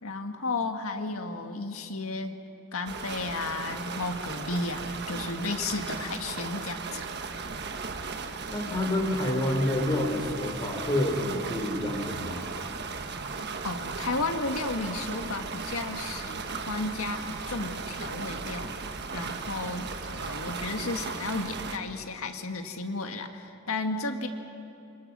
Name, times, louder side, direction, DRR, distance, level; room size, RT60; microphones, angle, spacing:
voice 1, 0.0-2.4 2.7-7.0 13.2-13.3 13.6-18.7 19.1-24.3, left 3 dB, 85° left, 5 dB, 1.8 m, -33 dB
sound 1, 2.9-21.8, right 4 dB, 55° right, 1.4 m, -36 dB
voice 2, 8.5-12.5, left 1 dB, 20° left, 1 dB, 4.0 m, -28 dB
28.5 x 25.5 x 6.2 m, 2.8 s
head